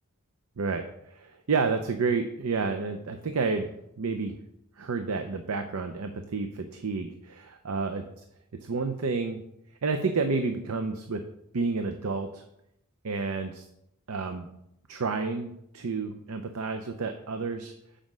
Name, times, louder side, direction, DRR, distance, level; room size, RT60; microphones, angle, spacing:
voice 1, 1.2-4.4 4.8-8.0 8.6-9.4 9.8-11.2 11.5-12.4 13.0-13.7 14.1-14.5 14.9-17.7, right 4 dB, 80° right, 7 dB, 0.6 m, -30 dB
7.6 x 5.0 x 6.1 m, 0.79 s
head